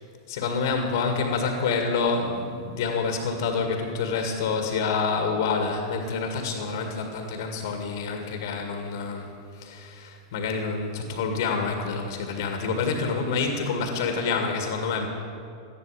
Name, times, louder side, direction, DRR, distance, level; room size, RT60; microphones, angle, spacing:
voice 1, 0.3-15.1, left 4 dB, 60° left, 4 dB, 2.0 m, -27 dB
18.5 x 12.5 x 5.0 m, 2.4 s
figure-of-eight pair, 100°, 2 cm